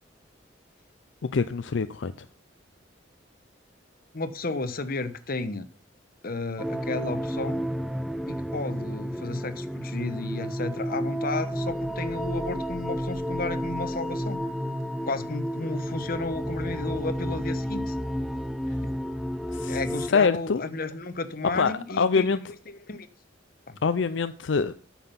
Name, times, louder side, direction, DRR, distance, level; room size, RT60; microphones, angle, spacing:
voice 1, 1.3-2.1 19.5-19.8 20.1-20.6 21.5-22.4 23.8-24.7, left 5 dB, 75° left, 0.5 m, -24 dB
voice 2, 4.1-5.7 6.2-7.6 8.3-14.4 15.0-17.9 18.8-18.9 19.7-23.1 23.7-23.8, left 3 dB, 50° left, 1.1 m, -33 dB
sound 1, 6.6-20.1, equal, ahead, 0.4 m, -31 dB
9.5 x 7.3 x 5.8 m
head